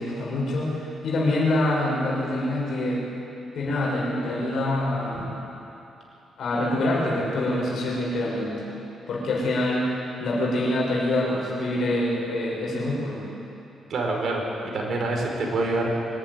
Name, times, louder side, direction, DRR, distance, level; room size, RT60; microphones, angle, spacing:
voice 1, 0.0-3.0 3.5-5.3 6.4-8.7 9.1-9.9 10.2-13.2, left 1 dB, 65° left, -3 dB, 6.1 m, -25 dB
voice 2, 13.9-15.9, right 2 dB, 60° right, 0 dB, 4.6 m, -26 dB
24.5 x 11.5 x 9.7 m, 2.9 s
cardioid pair, 85°, 0 cm